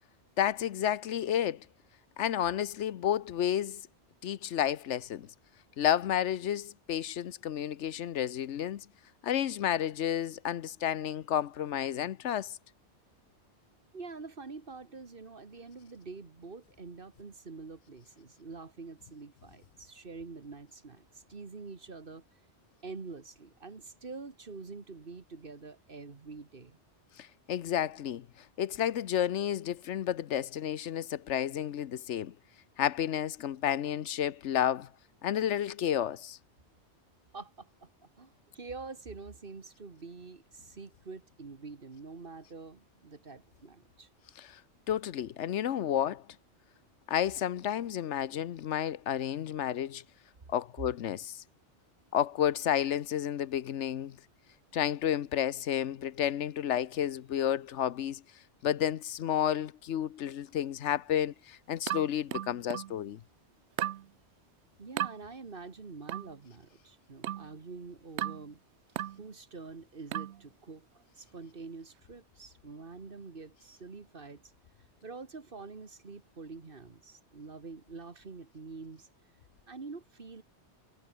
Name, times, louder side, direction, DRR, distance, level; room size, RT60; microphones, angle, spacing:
voice 1, 0.4-1.6 2.2-3.8 4.2-5.3 5.8-8.9 9.2-12.6 27.2-28.3 28.6-32.3 32.8-34.9 35.2-36.4 44.4-44.6 44.9-46.3 47.1-50.0 50.5-51.4 52.1-54.2 54.7-58.2 58.6-63.2, left 10 dB, 80° left, 1.1 m, -31 dB
voice 2, 13.9-22.3 22.8-26.8 37.3-37.9 38.2-44.1 64.8-68.6 69.2-74.5 75.0-79.1 79.7-80.4, right 4 dB, 50° right, 1.9 m, -46 dB
sound 1, 61.9-63.0 63.8-64.1 65.0-65.2 66.1-66.3 67.2-67.5 68.2-68.5 69.0-69.2 70.1-70.4, right 12 dB, 75° right, 0.9 m, -35 dB
omnidirectional pair, 1.2 m